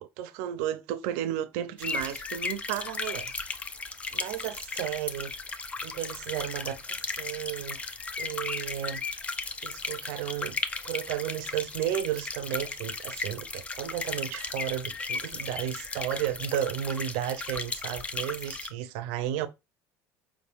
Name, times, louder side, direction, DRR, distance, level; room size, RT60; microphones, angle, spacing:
voice 1, 0.0-3.3 4.1-5.3 5.8-7.8 8.2-9.0 9.6-10.6 10.8-19.5, right 11 dB, 90° right, 0.6 m, -33 dB
sound 1, 1.8-18.7, left 4 dB, 20° left, 0.4 m, -36 dB
5.0 x 3.5 x 2.5 m
cardioid pair, 140°, 7 cm